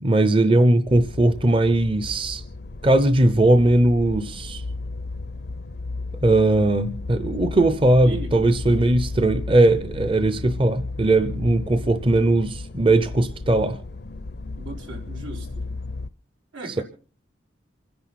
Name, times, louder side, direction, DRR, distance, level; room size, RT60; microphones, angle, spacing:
voice 1, 0.0-2.4 2.8-4.6 6.2-13.8, right 2 dB, 30° right, 0.7 m, -19 dB
sound 1, 0.9-16.1, left 3 dB, 60° left, 0.6 m, -34 dB
voice 2, 8.0-8.5 14.6-15.7 16.5-16.8, right 2 dB, 90° right, 5.1 m, -36 dB
28.0 x 10.5 x 4.2 m
head